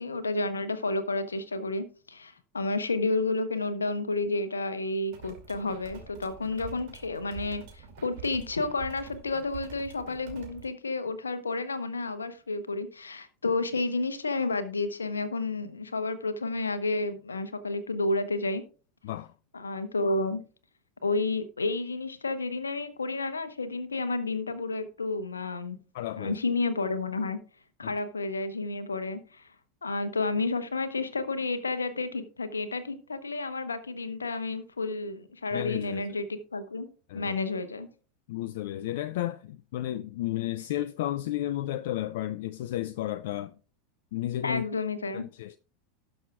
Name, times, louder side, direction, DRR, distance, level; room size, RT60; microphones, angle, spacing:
voice 1, 0.0-18.6 19.5-20.4 21.0-25.8 26.2-27.4 27.8-29.5 29.8-36.9 37.1-37.9 44.4-45.3, left 3 dB, 80° left, 0.9 m, -31 dB
sound 1, 5.1-10.6, right 7 dB, 55° right, 2.5 m, -46 dB
voice 2, 19.0-19.3 25.9-26.4 27.8-28.0 35.5-36.0 37.1-37.4 38.3-43.5 44.1-44.6 45.1-45.6, left 13 dB, 60° left, 0.3 m, -33 dB
18.0 x 6.2 x 2.4 m
figure-of-eight pair, 85°, 0 cm